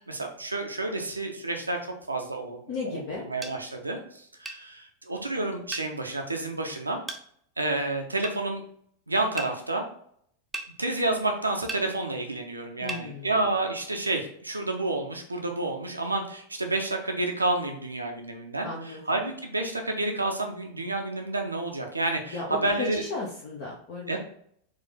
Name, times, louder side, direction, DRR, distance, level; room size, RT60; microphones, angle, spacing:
voice 1, 0.0-3.0 3.3-7.0 7.6-8.6 9.1-9.8 10.8-23.0 24.1-24.2, right 2 dB, 80° right, 3 dB, 0.6 m, -30 dB
voice 2, 2.7-3.3 12.8-13.3 18.6-19.0 22.3-24.2, left 3 dB, 50° left, -3 dB, 0.8 m, -35 dB
sound 1, 3.4-3.6 4.5-4.6 5.7-5.9 7.1-7.2 8.2-8.4 9.4-9.5 10.5-10.7 11.7-11.9 12.9-13.1, right 3 dB, 10° right, 0.6 m, -35 dB
4.5 x 2.5 x 3.8 m, 0.66 s
figure-of-eight pair, 90°, 0 cm